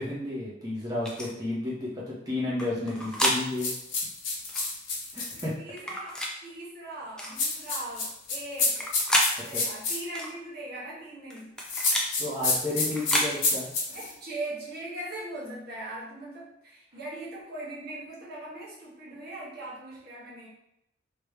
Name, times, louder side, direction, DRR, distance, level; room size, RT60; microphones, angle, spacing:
voice 1, 0.0-3.7 5.1-5.5 12.2-13.7, left 2 dB, 20° right, -7 dB, 1.2 m, -32 dB
sound 1, 1.0-1.3 2.6-3.4 4.5-4.7 5.8-6.3 7.2-7.4 8.6-9.3 10.1-10.3 11.3-12.1 12.9-13.3, equal, 5° left, 0.4 m, -29 dB
sound 2, 3.6-5.4 7.3-10.0 11.6-14.1, left 3 dB, 75° left, 1.2 m, -28 dB
voice 2, 5.3-8.9 9.3-11.6 13.3-13.4 13.9-20.5, right 1 dB, 50° right, -6 dB, 1.4 m, -40 dB
3.3 x 3.2 x 3.3 m, 0.80 s
head